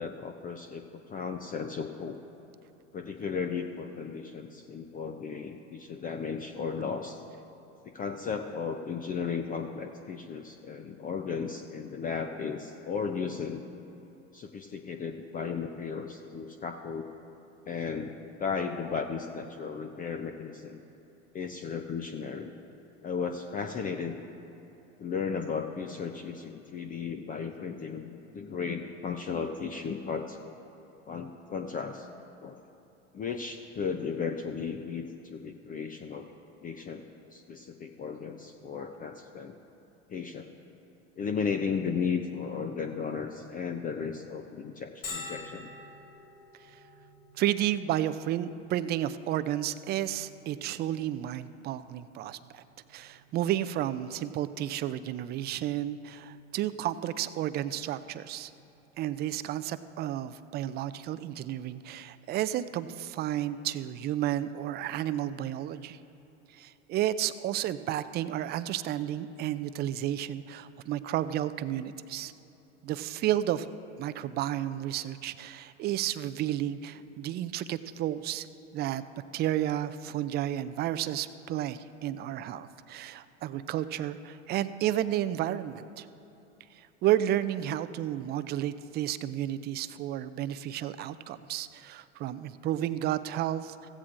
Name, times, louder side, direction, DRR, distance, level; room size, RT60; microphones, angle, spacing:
voice 1, 0.0-2.2 2.9-7.2 7.8-13.7 14.3-17.1 17.7-18.1 18.4-20.8 21.3-22.5 23.0-24.2 25.0-30.4 31.1-32.1 32.4-32.6 33.1-36.3 36.6-39.6 40.1-40.5 41.2-45.7, left 6 dB, 25° left, 6 dB, 0.5 m, -35 dB
Bell, 45.0-60.5, left 3 dB, 75° left, 3.1 m, -51 dB
voice 2, 47.4-52.6 52.9-58.5 59.0-66.0 66.5-72.3 72.8-73.7 74.0-78.5 78.7-79.0 79.3-86.1 86.7-93.9, right 12 dB, 30° right, 13 dB, 0.4 m, -32 dB
16.0 x 15.0 x 2.5 m, 3.0 s
hypercardioid pair, 95°, 37 cm